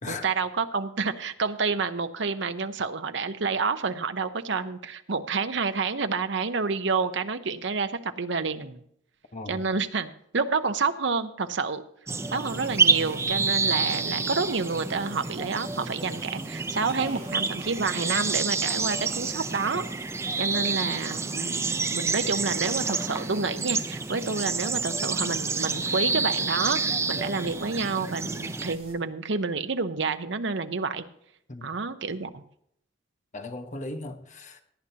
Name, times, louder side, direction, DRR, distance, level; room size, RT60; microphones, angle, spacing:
voice 1, 0.1-8.8 9.5-11.8 12.3-19.8 20.4-31.0 31.6-32.4, right 4 dB, 65° right, 0.8 m, -29 dB
sound 1, 12.1-28.8, right 4 dB, 15° right, 0.5 m, -28 dB
sound 2, 12.4-28.9, right 3 dB, 35° right, 4.0 m, -49 dB
voice 2, 33.3-34.6, left 2 dB, 40° left, 1.2 m, -37 dB
17.5 x 10.0 x 2.9 m
head